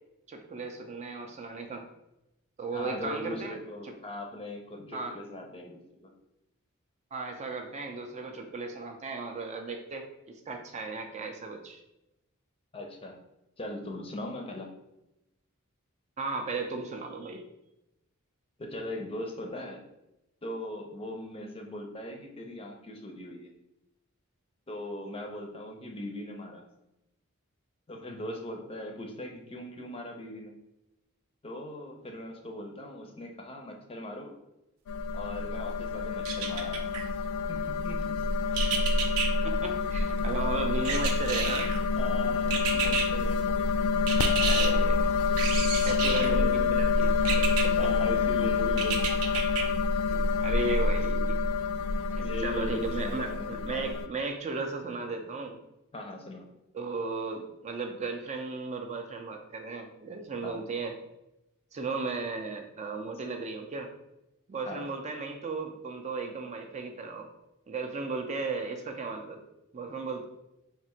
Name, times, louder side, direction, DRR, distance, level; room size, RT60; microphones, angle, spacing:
voice 1, 0.3-1.8 2.6-3.6 3.8-3.9 4.9-5.1 7.1-11.8 16.2-17.4 38.6-38.8 39.4-41.7 42.8-42.9 44.4-47.9 50.0-51.4 52.1-55.6 56.7-60.9 61.7-63.9 64.5-67.3 67.7-69.4 69.7-70.3, right 3 dB, 30° right, 4 dB, 0.4 m, -36 dB
voice 2, 2.7-6.1 12.7-13.2 13.6-14.7 18.6-19.8 20.4-23.5 24.7-26.6 27.9-30.5 31.4-34.3 35.1-36.9 37.5-38.2 42.0-43.4 46.2-46.8 47.8-49.0 52.2-54.0 55.9-56.5 60.4-60.6 64.7-64.9, left 1 dB, 25° left, 3 dB, 0.6 m, -39 dB
sound 1, 34.9-54.1, left 4 dB, 85° left, 0.3 m, -27 dB
sound 2, 36.2-37.0 38.5-39.3 40.8-41.8 42.5-43.1 44.1-44.7 45.4-46.3 47.2-47.6 48.8-49.6 50.1-50.2, right 6 dB, 85° right, 0.6 m, -30 dB
3.6 x 2.5 x 4.2 m, 0.90 s
head